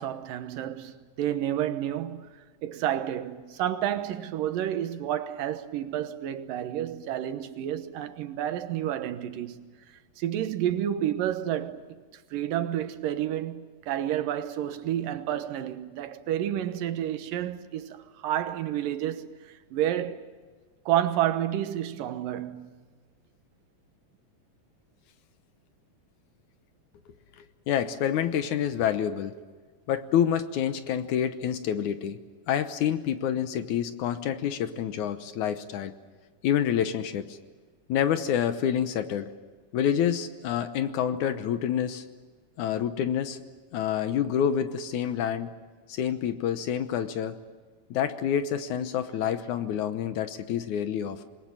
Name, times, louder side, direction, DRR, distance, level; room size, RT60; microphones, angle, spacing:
voice 1, 0.0-2.3 2.6-9.6 10.2-20.3 20.9-22.7, right 11 dB, 80° right, 2.8 m, -30 dB
voice 2, 27.7-29.3 29.9-32.2 32.5-35.9 36.4-37.4 37.9-39.3 39.7-42.0 42.6-43.4 43.7-45.5 45.9-47.4 47.9-51.2, left 9 dB, 70° left, 2.2 m, -27 dB
26.5 x 20.5 x 9.0 m
omnidirectional pair, 3.9 m